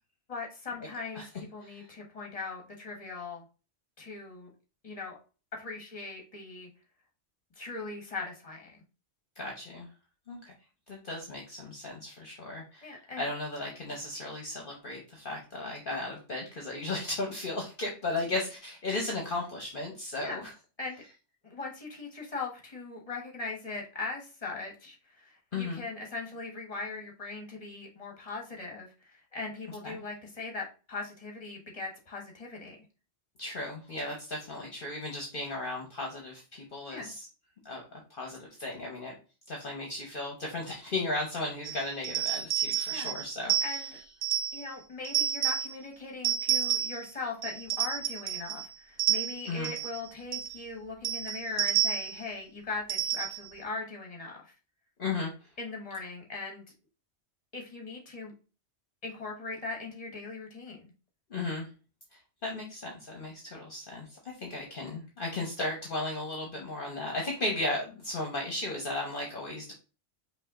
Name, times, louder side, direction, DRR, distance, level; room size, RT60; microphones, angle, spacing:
voice 1, 0.3-3.4 4.0-4.5 4.8-5.2 5.5-6.7 7.6-8.8 12.8-13.2 20.2-20.5 20.8-21.0 21.4-32.8 36.9-37.1 42.9-43.2 43.6-43.9 44.5-54.5 55.6-56.6 57.5-58.3 59.0-60.9, left 3 dB, 35° left, 0 dB, 1.4 m, -40 dB
voice 2, 9.4-9.9 10.3-10.5 10.9-20.5 25.5-25.8 29.8-30.0 33.4-37.3 37.6-39.1 39.5-43.5 49.5-49.7 55.0-55.3 61.3-61.7 62.4-64.1 64.4-69.7, left 2 dB, 50° left, 0 dB, 1.2 m, -35 dB
sound 1, 41.6-44.7 45.0-45.7 46.2-47.1 47.4-48.7 49.0-50.0 50.3-50.6 51.0-52.2 52.9-53.5, right 10 dB, 60° right, 0.8 m, -30 dB
5.4 x 2.7 x 3.7 m, 0.33 s
omnidirectional pair, 1.2 m